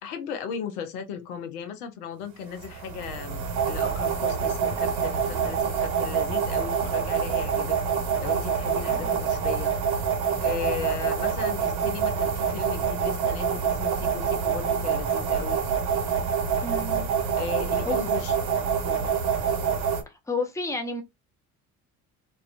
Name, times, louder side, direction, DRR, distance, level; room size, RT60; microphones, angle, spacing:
voice 1, 0.0-7.8 8.2-9.7 10.4-15.6 17.3-18.3 18.8-19.1, left 7 dB, 80° left, 0.6 m, -36 dB
sound 1, 2.6-20.0, right 7 dB, 65° right, 0.9 m, -26 dB
voice 2, 16.6-17.1 17.8-18.0 20.1-21.0, left 3 dB, 5° left, 0.7 m, -31 dB
2.4 x 2.2 x 2.4 m
hypercardioid pair, 50°, 44 cm